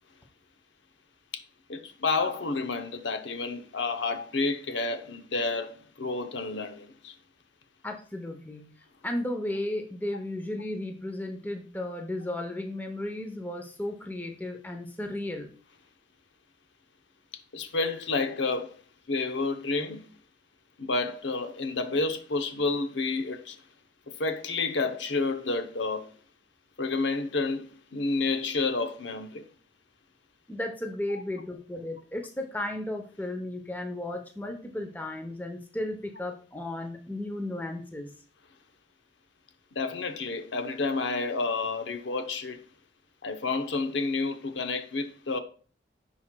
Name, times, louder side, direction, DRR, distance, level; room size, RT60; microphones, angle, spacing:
voice 1, 1.7-7.2 17.5-18.7 19.1-20.0 20.8-23.6 24.2-26.1 26.8-29.5 39.8-42.6 43.2-45.4, left 3 dB, 85° left, 0.8 m, -30 dB
voice 2, 7.8-8.7 9.0-15.5 30.5-38.1, left 1 dB, 10° left, 0.7 m, -34 dB
10.5 x 4.3 x 2.2 m
head